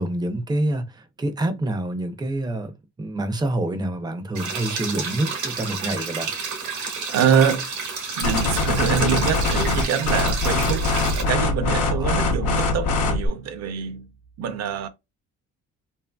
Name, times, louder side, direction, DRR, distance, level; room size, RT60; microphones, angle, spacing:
voice 1, 0.0-2.7 3.0-6.3 11.9-12.3, right 1 dB, 15° right, 0.5 m, -27 dB
sound 1, 4.4-11.2, right 5 dB, 85° right, 1.0 m, -30 dB
voice 2, 7.1-7.7 8.1-10.9 11.2-14.1 14.4-14.9, right 7 dB, 60° right, 0.6 m, -24 dB
sound 2, 8.2-13.3, left 3 dB, 80° left, 0.9 m, -23 dB
2.6 x 2.6 x 2.2 m
cardioid pair, 90°, 30 cm